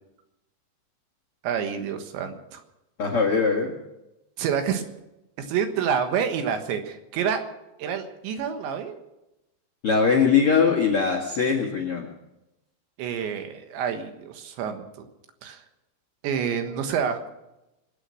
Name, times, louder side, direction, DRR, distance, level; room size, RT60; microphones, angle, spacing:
voice 1, 1.4-2.6 4.4-4.8 5.4-7.5 7.8-9.0 13.0-14.9 15.4-15.6 16.2-17.2, right 7 dB, 80° right, 7 dB, 3.7 m, -28 dB
voice 2, 3.0-3.7 9.8-12.1, left 5 dB, 50° left, 2 dB, 1.8 m, -21 dB
26.0 x 8.8 x 6.3 m, 0.92 s
omnidirectional pair, 5.1 m